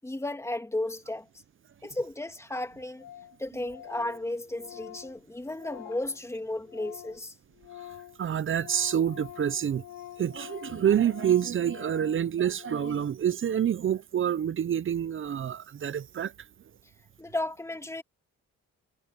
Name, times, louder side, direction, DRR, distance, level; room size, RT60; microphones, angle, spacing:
voice 1, 0.0-1.3 1.8-3.1 3.4-7.3 17.2-18.0, left 1 dB, 10° left, 2.3 m, -34 dB
Organ, 2.0-2.1 2.3-2.4 2.6-2.7 3.0-3.4 3.7-7.3 7.5-13.2, left 13 dB, 90° left, 2.0 m, -46 dB
voice 2, 8.2-9.8 10.2-16.3, right 9 dB, 45° right, 0.7 m, -27 dB
cardioid pair, 90°, 30 cm